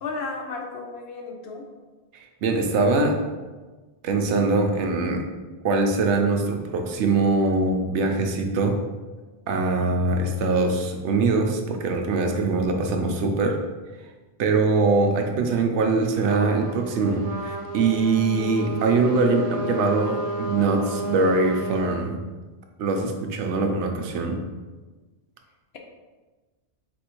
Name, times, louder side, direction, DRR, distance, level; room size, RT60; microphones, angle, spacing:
voice 1, 0.0-1.7 9.8-9.9, left 3 dB, 70° left, 1 dB, 0.9 m, -33 dB
voice 2, 2.4-3.2 4.0-5.2 5.6-8.8 9.5-13.6 14.4-22.2 22.8-24.4, right 3 dB, 90° right, 4 dB, 0.9 m, -22 dB
Trumpet, 16.3-21.9, right 1 dB, 40° right, 0.7 m, -32 dB
4.1 x 2.6 x 4.4 m, 1.3 s
omnidirectional pair, 1.1 m